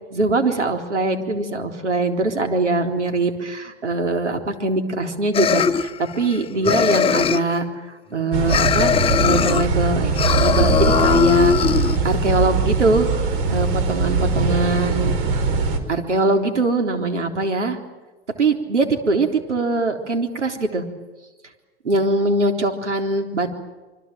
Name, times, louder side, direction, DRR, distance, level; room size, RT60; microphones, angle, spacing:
voice 1, 0.1-5.9 6.2-8.9 9.2-11.5 12.0-13.1 13.5-15.1 15.9-17.8 18.4-20.8 21.8-23.5, right 2 dB, 80° right, 5 dB, 3.9 m, -22 dB
sound 1, 5.3-6.4 6.6-7.6 8.5-9.7 10.1-12.0, left 6 dB, 15° left, 1.0 m, -19 dB
sound 2, 8.3-15.8, right 4 dB, 50° right, 4.6 m, -21 dB
26.5 x 25.0 x 7.7 m, 1.2 s
figure-of-eight pair, 100°, 35 cm